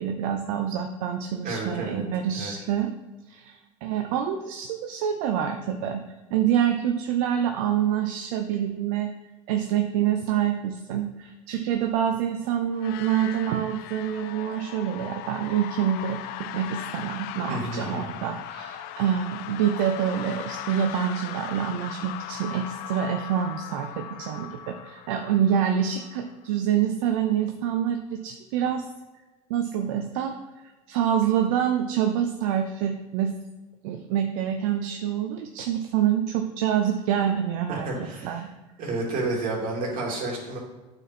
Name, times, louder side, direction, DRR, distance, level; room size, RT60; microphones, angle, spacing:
voice 1, 0.0-2.9 3.3-6.0 6.3-9.1 9.5-28.9 29.5-30.4 30.9-33.3 33.8-38.5, right 9 dB, 75° right, 6 dB, 0.6 m, -26 dB
voice 2, 1.4-2.0 2.3-2.5 17.5-18.0 37.7-38.4 38.8-40.6, right 2 dB, 55° right, -2 dB, 2.6 m, -30 dB
sound 1, 12.7-26.5, left 11 dB, 65° left, 0.5 m, -38 dB
8.9 x 4.3 x 4.3 m, 1.2 s
hypercardioid pair, 85°, 17 cm